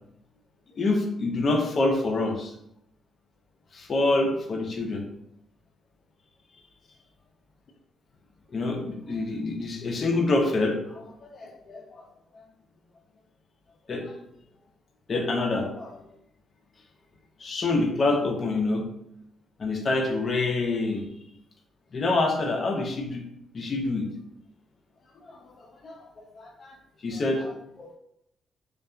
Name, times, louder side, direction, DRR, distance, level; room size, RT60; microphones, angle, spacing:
voice 1, 0.8-2.5 3.7-5.0 8.5-12.0 13.9-14.0 15.1-16.0 17.4-18.8 19.6-21.0 21.9-23.2 23.5-24.1 25.8-26.0 26.4-26.7 27.0-28.0, left 2 dB, 45° left, 2 dB, 0.5 m, -26 dB
2.6 x 2.2 x 2.2 m, 0.77 s
cardioid pair, 90°, 0 cm